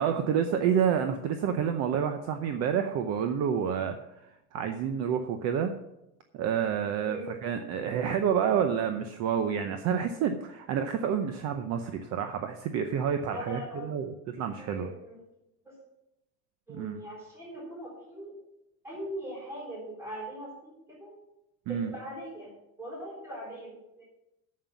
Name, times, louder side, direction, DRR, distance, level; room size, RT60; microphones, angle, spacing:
voice 1, 0.0-4.0 4.5-5.7 6.3-14.9 16.7-17.0 21.7-21.9, right 8 dB, 45° right, 7 dB, 0.7 m, -29 dB
voice 2, 7.0-7.3 13.3-14.0 14.6-15.2 15.6-15.7 16.7-18.3 18.8-21.1 21.7-22.5 22.8-24.0, equal, 5° right, -5 dB, 3.8 m, -41 dB
9.0 x 7.6 x 7.3 m, 0.89 s
cardioid pair, 175°, 38 cm